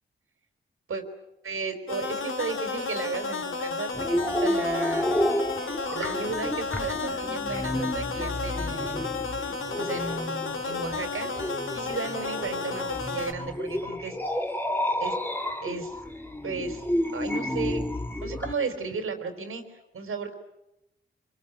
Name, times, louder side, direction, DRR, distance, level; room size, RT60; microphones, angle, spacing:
voice 1, 1.4-5.1 5.9-14.2 14.4-14.5 15.0-15.1 15.6-16.0 16.4-16.8 17.1-17.9 18.2-20.3, right 4 dB, 85° right, 6 dB, 4.4 m, -34 dB
sound 1, 1.9-13.3, left 4 dB, 70° left, 3.2 m, -32 dB
sound 2, 3.9-18.5, left 1 dB, 10° left, 2.4 m, -31 dB
26.0 x 24.0 x 9.4 m, 0.91 s
wide cardioid pair, 80°, 21 cm